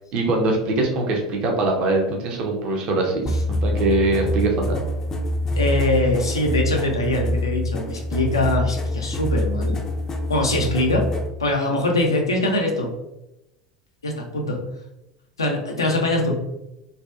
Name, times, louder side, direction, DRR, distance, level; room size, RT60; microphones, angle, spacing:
voice 1, 0.1-3.3 3.6-4.8, right 2 dB, 45° right, 1 dB, 0.5 m, -22 dB
sound 1, 3.3-11.3, left 1 dB, 20° left, 0.4 m, -25 dB
voice 2, 5.6-9.8 10.3-11.1 11.4-12.9 14.0-14.6 15.4-16.3, left 1 dB, 85° left, 1 dB, 0.5 m, -22 dB
2.6 x 2.2 x 2.4 m, 0.91 s
figure-of-eight pair, 75°, 2 cm